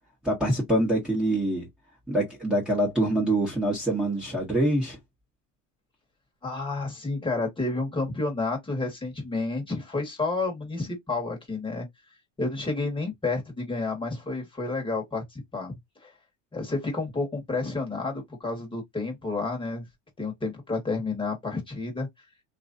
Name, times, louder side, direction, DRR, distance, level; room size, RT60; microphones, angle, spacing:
voice 1, 0.2-1.7 2.1-5.0, right 1 dB, ahead, 1.2 m, -25 dB
voice 2, 6.4-11.9 12.4-15.7 16.0-16.1 16.5-19.8 20.2-22.1, left 3 dB, 15° left, 1.4 m, -30 dB
2.9 x 2.6 x 2.6 m
supercardioid pair, 115°, 37 cm